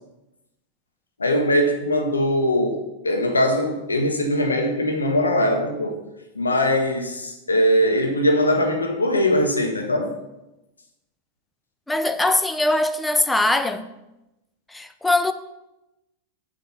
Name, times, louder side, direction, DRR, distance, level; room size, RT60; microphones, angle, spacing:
voice 1, 1.2-6.0 6.3-10.1, left 1 dB, 80° left, 1.5 m, -21 dB
voice 2, 11.9-13.9 14.7-15.3, left 2 dB, 5° left, 0.6 m, -21 dB
7.7 x 5.1 x 7.0 m
figure-of-eight pair, 90°, 0 cm